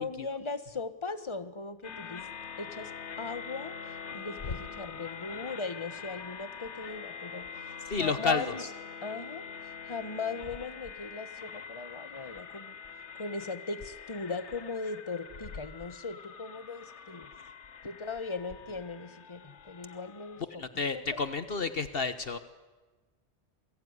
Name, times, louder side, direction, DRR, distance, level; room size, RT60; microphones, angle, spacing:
voice 1, 0.0-2.3 2.6-8.7 9.0-12.8 13.2-17.3 17.8-20.8 21.1-21.2, left 4 dB, 25° left, 11 dB, 1.5 m, -39 dB
sound 1, 1.8-20.4, left 6 dB, 90° left, 1.4 m, -45 dB
voice 2, 7.8-8.7 20.6-22.4, left 4 dB, 60° left, 11 dB, 1.4 m, -31 dB
28.0 x 21.5 x 9.7 m, 1.3 s
omnidirectional pair, 1.1 m